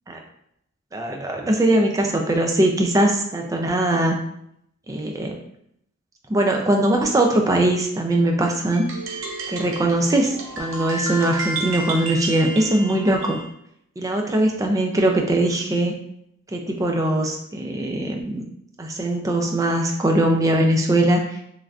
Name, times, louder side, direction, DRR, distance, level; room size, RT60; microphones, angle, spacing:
voice 1, 0.9-4.2 4.9-5.3 6.3-8.9 9.5-13.4 14.0-16.0 16.5-18.4 18.8-21.4, right 1 dB, 15° right, 2 dB, 0.3 m, -21 dB
sound 1, 8.7-13.5, right 2 dB, 75° right, 0.5 m, -31 dB
3.2 x 2.5 x 2.3 m, 0.74 s
head